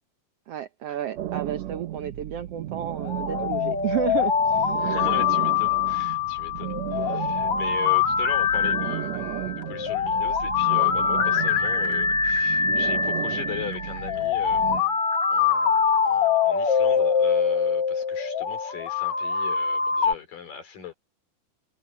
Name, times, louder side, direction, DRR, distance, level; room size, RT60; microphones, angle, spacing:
voice 1, 0.5-4.8, right 10 dB, 85° right, 1.3 m, -32 dB
sound 1, 1.2-14.8, right 13 dB, 65° right, 1.8 m, -34 dB
sound 2, 3.0-20.1, left 6 dB, 50° left, 2.0 m, -24 dB
voice 2, 4.8-15.0 15.3-20.9, left 8 dB, 70° left, 5.5 m, -39 dB
omnidirectional pair, 4.0 m